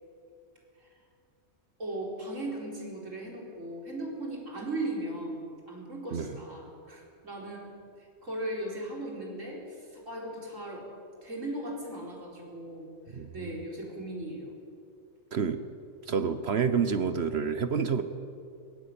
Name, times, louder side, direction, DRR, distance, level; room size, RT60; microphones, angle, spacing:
voice 1, 1.8-5.4 5.7-7.6 8.0-10.8 11.2-14.5, right 1 dB, 85° right, -1 dB, 4.8 m, -37 dB
voice 2, 13.1-13.6 15.3-15.7 16.0-18.0, right 6 dB, 60° right, 10 dB, 1.1 m, -29 dB
21.5 x 17.0 x 8.7 m, 2.5 s
omnidirectional pair, 1.3 m